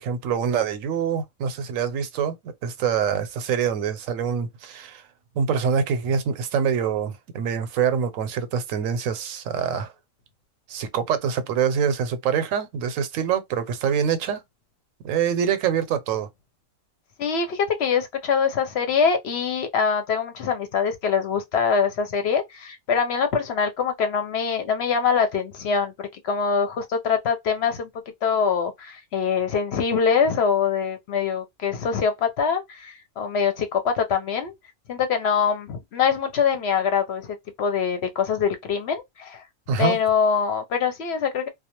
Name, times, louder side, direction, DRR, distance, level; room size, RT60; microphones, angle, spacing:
voice 1, 0.0-5.0 5.4-9.9 10.7-14.4 15.0-16.3 39.7-40.0, right 7 dB, 85° right, 1.0 m, -25 dB
voice 2, 17.2-27.9 28.2-34.5 34.9-39.4 39.8-41.5, left 6 dB, 60° left, 0.8 m, -24 dB
2.3 x 2.2 x 2.8 m
omnidirectional pair, 1.3 m